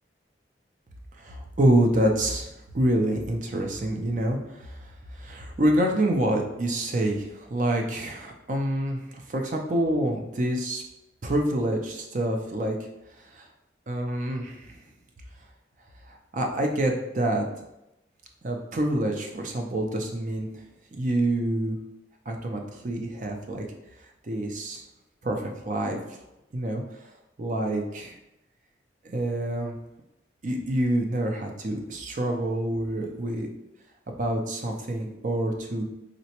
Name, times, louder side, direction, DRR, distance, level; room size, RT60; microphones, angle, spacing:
voice 1, 1.2-2.5 2.7-4.8 5.1-10.8 11.2-12.8 13.3-13.4 13.9-14.8 16.1-17.4 18.4-20.5 20.9-21.8 22.3-23.6 24.3-24.8 25.2-26.0 26.5-26.8 27.4-28.2 29.0-29.7 30.4-33.5 34.2-35.8, right 1 dB, 45° right, 2 dB, 0.5 m, -27 dB
3.8 x 2.2 x 2.8 m, 0.89 s
head